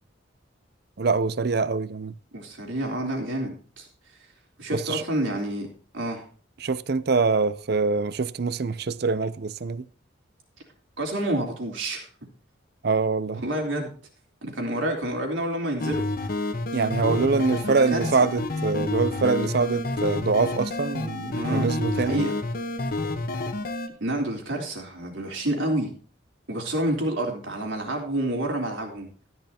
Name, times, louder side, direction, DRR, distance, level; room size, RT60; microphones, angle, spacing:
voice 1, 1.0-2.2 4.7-5.0 6.6-9.9 12.8-13.4 16.7-22.3, right 4 dB, 55° right, 0.5 m, -24 dB
voice 2, 2.3-3.9 4.6-5.7 5.9-6.2 11.0-12.1 13.4-13.9 14.4-16.1 17.3-18.3 21.3-22.3 24.0-25.9 26.5-29.1, right 1 dB, 80° right, 3.7 m, -29 dB
sound 1, 15.8-23.9, left 2 dB, 50° left, 1.1 m, -29 dB
13.5 x 11.0 x 2.9 m
head